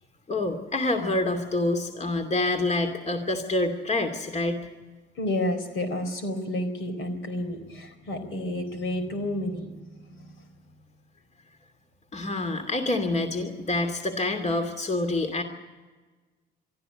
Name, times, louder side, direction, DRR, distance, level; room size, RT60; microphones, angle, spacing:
voice 1, 0.3-4.7 12.1-15.4, left 2 dB, 35° left, 6 dB, 2.7 m, -27 dB
voice 2, 5.2-10.4, left 1 dB, 75° left, 7 dB, 4.1 m, -31 dB
23.0 x 13.5 x 9.8 m, 1.3 s
cardioid pair, 90°, 20 cm